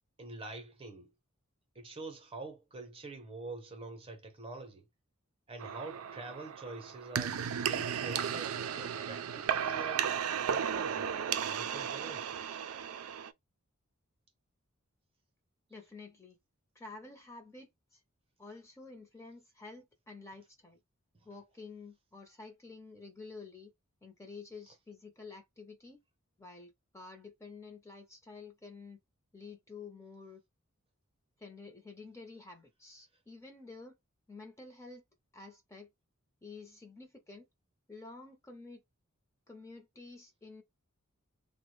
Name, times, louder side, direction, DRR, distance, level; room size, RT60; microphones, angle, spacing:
voice 1, 0.2-1.1 1.7-4.9 5.5-7.4 7.7-10.1 10.5-12.6 13.1-13.2, right 2 dB, 25° right, 0.8 m, -46 dB
sound 1, 5.6-13.3, right 8 dB, 80° right, 0.4 m, -35 dB
voice 2, 15.7-16.4 16.7-18.0 18.4-20.8 21.2-23.7 24.0-26.0 26.4-29.0 29.3-30.4 31.4-34.0 34.3-35.0 35.3-35.9 36.4-37.5 37.9-38.8 39.5-40.6, left 3 dB, 15° left, 0.7 m, -50 dB
3.3 x 2.1 x 3.2 m
head